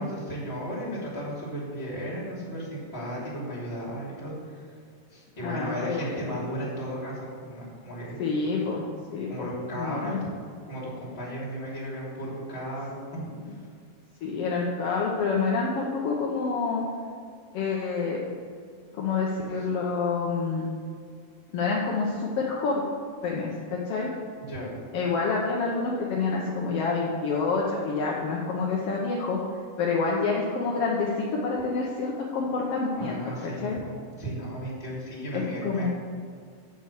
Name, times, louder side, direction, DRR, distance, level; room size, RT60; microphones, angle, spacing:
voice 1, 0.0-4.6 5.1-8.2 9.3-10.1 10.6-13.6 24.4-24.7 33.0-35.9, equal, 20° left, -6 dB, 2.7 m, -35 dB
voice 2, 5.4-6.1 8.2-9.5 9.8-10.2 14.2-16.8 17.5-18.2 18.9-20.7 21.5-22.8 23.2-24.1 24.9-29.4 29.8-33.8 35.3-35.9, left 4 dB, 70° left, -3 dB, 1.4 m, -28 dB
7.6 x 6.6 x 7.0 m, 2.2 s
omnidirectional pair, 3.9 m